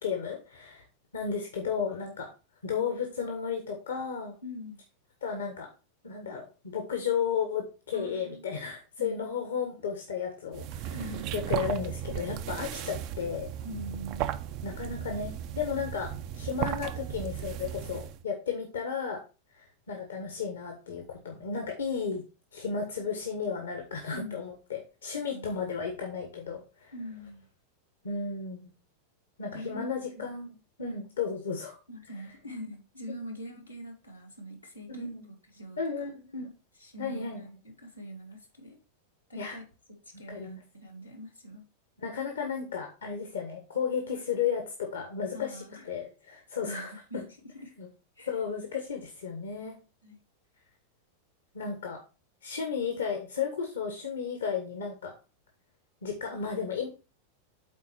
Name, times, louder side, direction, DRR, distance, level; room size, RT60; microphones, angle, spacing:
voice 1, 0.0-0.8 1.1-2.3 2.6-4.3 5.2-5.7 6.0-10.9 11.3-13.5 14.6-16.1 16.3-19.2 19.6-22.2 22.5-26.9 28.0-28.7 29.4-30.5 30.8-31.8 34.9-35.2 35.8-36.5 37.0-37.4 39.3-39.6 40.3-40.6 42.0-47.2 47.8-47.9 48.3-49.8 51.5-52.0 52.4-55.1 56.0-56.9, left 6 dB, 70° left, 3 dB, 1.4 m, -33 dB
voice 2, 4.4-4.8 7.9-8.4 9.0-9.2 10.9-11.4 13.6-14.3 24.1-24.4 25.3-25.6 26.9-27.5 29.5-30.3 31.9-35.1 35.5-36.1 36.8-38.8 39.3-41.6 45.3-45.9 46.6-47.7 48.2-48.3 50.0-50.2, left 1 dB, 90° left, -2 dB, 1.9 m, -43 dB
sound 1, 10.5-18.2, right 11 dB, 40° right, 0.5 m, -36 dB
8.4 x 4.2 x 4.3 m, 0.32 s
figure-of-eight pair, 90°, 0 cm